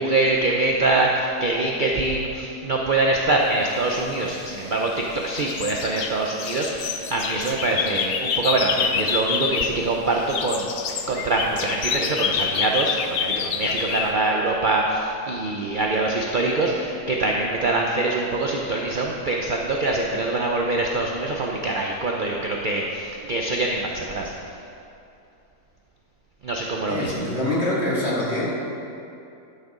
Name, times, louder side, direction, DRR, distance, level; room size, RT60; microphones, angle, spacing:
voice 1, 0.0-24.3 26.4-27.1, right 2 dB, 55° right, -1 dB, 0.5 m, -24 dB
sound 1, 4.2-5.0 5.3-9.9 10.1-14.1, left 6 dB, 65° left, 0.7 m, -27 dB
voice 2, 26.9-28.5, left 1 dB, 40° left, -7 dB, 2.7 m, -24 dB
11.0 x 6.6 x 5.0 m, 2.7 s
omnidirectional pair, 1.7 m